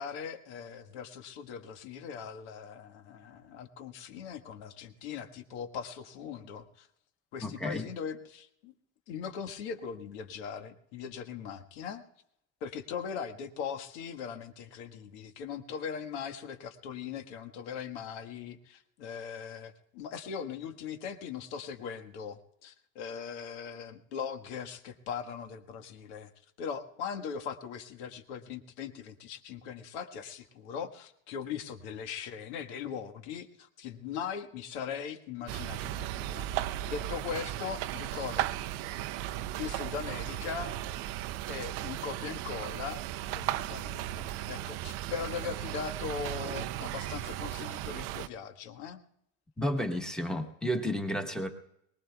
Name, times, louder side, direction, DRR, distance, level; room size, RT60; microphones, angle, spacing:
voice 1, 0.0-6.9 7.3-8.7 9.1-12.0 12.6-26.3 26.6-36.5 36.9-39.0 39.6-40.8 41.5-49.0, left 7 dB, 70° left, 7 dB, 1.6 m, -40 dB
voice 2, 7.4-7.9 49.6-51.5, equal, ahead, 4 dB, 1.4 m, -32 dB
sound 1, 35.5-48.3, right 13 dB, 40° right, 0.5 m, -36 dB
23.0 x 20.0 x 2.3 m, 0.76 s
supercardioid pair, 145°, 36 cm